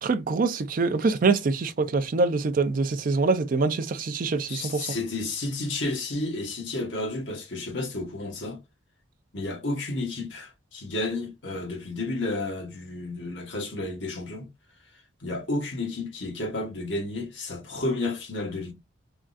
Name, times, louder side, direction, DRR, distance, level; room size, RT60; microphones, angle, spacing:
voice 1, 0.0-5.0, right 4 dB, 45° right, 0.4 m, -25 dB
voice 2, 4.5-8.6 9.3-14.5 15.2-18.7, left 2 dB, 65° left, 1.0 m, -31 dB
3.5 x 2.4 x 2.4 m
head